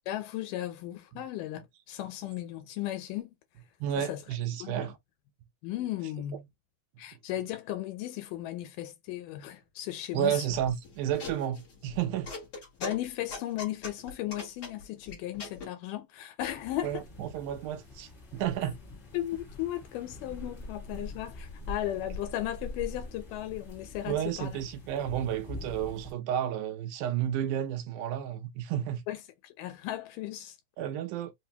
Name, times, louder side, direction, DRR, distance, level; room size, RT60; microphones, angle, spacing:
voice 1, 0.1-3.3 3.9-4.2 4.6-4.9 5.6-6.5 7.0-10.5 12.8-17.0 19.1-24.6 29.1-30.6, left 13 dB, 85° left, 2.2 m, -36 dB
voice 2, 3.8-5.0 10.1-12.3 16.8-18.8 24.1-29.0 30.8-31.3, right 10 dB, 85° right, 2.1 m, -31 dB
sound 1, 10.5-15.7, left 4 dB, 60° left, 1.1 m, -41 dB
sound 2, 16.4-26.1, left 2 dB, 30° left, 1.0 m, -44 dB
5.0 x 2.1 x 2.8 m
omnidirectional pair, 3.6 m